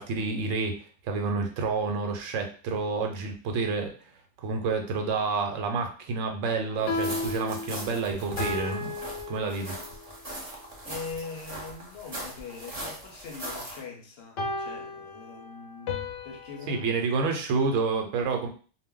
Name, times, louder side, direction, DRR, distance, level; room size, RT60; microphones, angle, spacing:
voice 1, 0.0-3.9 4.4-8.9 9.3-9.7 10.3-10.5 16.7-18.5, right 4 dB, 90° right, 1.0 m, -29 dB
sound 1, 6.7-10.1 14.4-16.9, left 3 dB, 90° left, 1.0 m, -34 dB
sound 2, 6.9-13.8, right 1 dB, 35° right, 0.8 m, -40 dB
voice 2, 10.8-16.9, left 5 dB, 65° left, 0.7 m, -42 dB
2.2 x 2.1 x 3.6 m
omnidirectional pair, 1.3 m